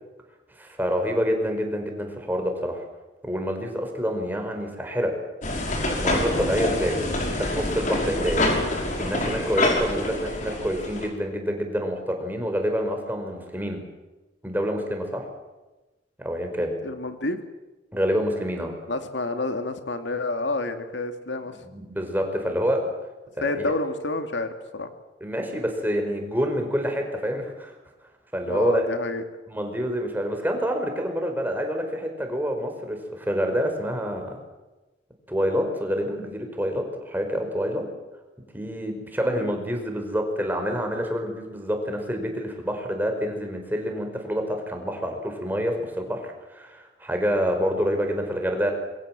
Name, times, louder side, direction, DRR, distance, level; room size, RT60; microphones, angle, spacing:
voice 1, 0.6-2.8 3.2-5.1 6.0-8.5 9.0-13.8 14.4-15.2 16.2-16.7 17.9-18.7 21.6-22.8 23.4-23.7 25.2-27.7 28.3-28.8 29.5-34.4 35.3-37.8 38.5-48.7, equal, 10° right, 4 dB, 4.9 m, -27 dB
sound 1, 5.4-11.1, left 1 dB, 45° left, 5.5 m, -26 dB
voice 2, 7.2-7.5 16.8-17.4 18.9-21.5 23.4-24.9 28.5-29.2 39.3-39.5, left 2 dB, 80° left, 7 dB, 2.3 m, -29 dB
26.5 x 23.0 x 7.6 m, 1.1 s
head